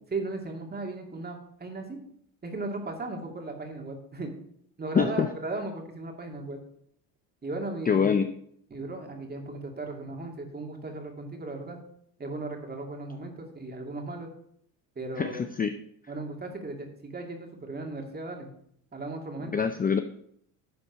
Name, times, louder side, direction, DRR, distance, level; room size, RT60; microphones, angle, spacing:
voice 1, 0.1-2.0 2.4-4.3 4.8-6.6 7.4-8.1 8.7-11.8 12.2-14.3 15.0-15.4 16.1-18.5 18.9-19.6, right 2 dB, 20° right, 2 dB, 2.5 m, -36 dB
voice 2, 4.9-5.3 7.9-8.3 15.2-15.7 19.5-20.0, left 6 dB, 20° left, 8 dB, 0.5 m, -24 dB
11.0 x 4.4 x 6.7 m, 0.68 s
supercardioid pair, 95°, 42 cm